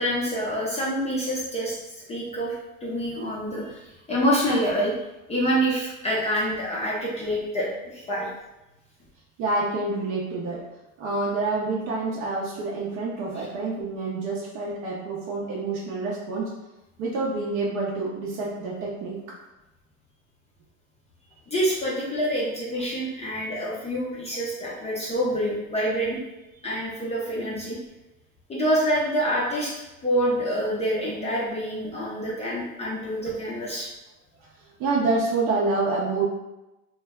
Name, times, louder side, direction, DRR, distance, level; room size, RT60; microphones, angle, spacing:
voice 1, 0.0-1.8 2.1-2.6 2.8-4.9 5.3-8.3 21.5-26.2 26.6-27.8 28.5-29.7 30.0-33.9, equal, 15° left, -6 dB, 0.5 m, -26 dB
voice 2, 9.4-10.6 11.0-16.5 17.0-19.2 34.4-34.5 34.8-36.2, right 3 dB, 50° right, -5 dB, 0.7 m, -27 dB
2.2 x 2.0 x 3.4 m, 0.97 s
hypercardioid pair, 100°, 42 cm